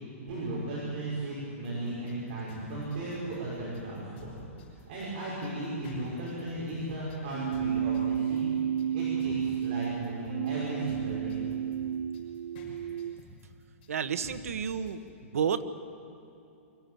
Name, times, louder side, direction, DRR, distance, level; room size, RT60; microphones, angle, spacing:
voice 1, 0.2-4.4 4.9-8.6 8.9-11.4, right 1 dB, 40° right, -6 dB, 5.4 m, -36 dB
sound 1, 1.6-15.1, left 2 dB, 45° left, 6.1 m, -50 dB
Keyboard (musical), 7.3-13.3, right 9 dB, 60° right, 0.4 m, -32 dB
voice 2, 13.9-15.0 15.3-15.6, right 7 dB, 90° right, 11 dB, 1.2 m, -30 dB
23.5 x 14.5 x 8.9 m, 2.7 s
hypercardioid pair, 165°, 8 cm